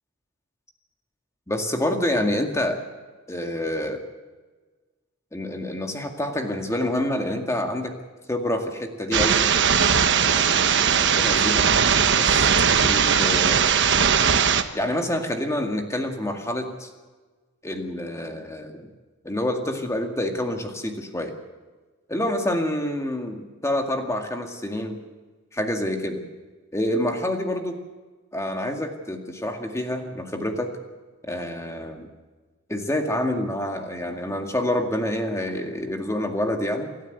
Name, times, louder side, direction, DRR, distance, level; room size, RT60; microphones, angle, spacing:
voice 1, 1.5-2.8 3.3-4.0 5.3-8.0 8.3-9.4 10.2-11.7 12.2-12.5 12.8-13.7 14.7-16.9 17.6-18.9 19.2-21.3 22.1-25.0 25.5-26.2 26.7-27.8 28.3-30.7 31.3-32.1 32.7-36.9, left 1 dB, 15° left, 4 dB, 2.1 m, -27 dB
sound 1, 9.1-14.6, right 7 dB, 55° right, 1.2 m, -19 dB
28.0 x 12.5 x 8.1 m, 1.3 s
head